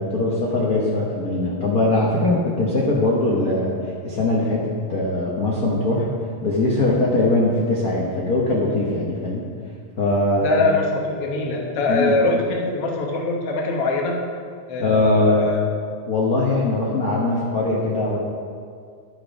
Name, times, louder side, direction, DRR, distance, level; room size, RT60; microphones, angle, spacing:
voice 1, 0.0-3.7 4.0-6.1 6.4-9.4 10.0-10.6 11.9-12.1 14.8-15.5 16.1-18.2, left 2 dB, 80° left, -4 dB, 0.8 m, -21 dB
voice 2, 10.4-14.2 14.7-15.5, left 2 dB, 60° left, 0 dB, 1.7 m, -23 dB
12.0 x 6.0 x 5.2 m, 2.2 s
omnidirectional pair, 3.5 m